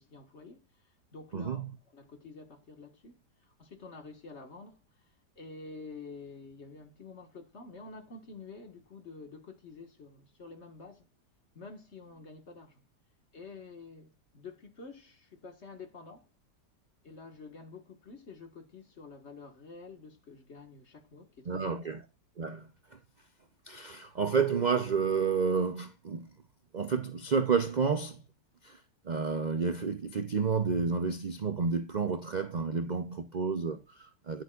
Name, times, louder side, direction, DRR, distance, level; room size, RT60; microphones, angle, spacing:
voice 1, 0.0-1.7 1.9-11.1 11.5-12.8 13.3-16.3 17.0-21.9, left 4 dB, 45° left, 1.8 m, -49 dB
voice 2, 1.3-1.7 21.5-22.0 22.4-22.7 23.7-26.3 26.7-28.2 28.6-28.8 29.0-34.4, right 5 dB, 60° right, 0.4 m, -30 dB
10.0 x 8.1 x 2.4 m
omnidirectional pair, 1.8 m